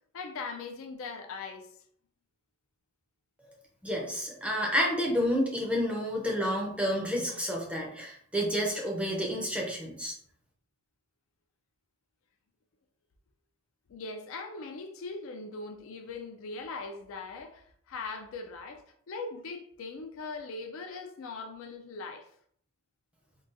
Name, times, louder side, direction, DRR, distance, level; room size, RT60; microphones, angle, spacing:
voice 1, 0.1-1.7 13.9-22.3, left 3 dB, 65° left, 0.4 m, -40 dB
voice 2, 3.8-10.1, equal, 5° right, 0.5 m, -30 dB
3.8 x 2.3 x 2.5 m
head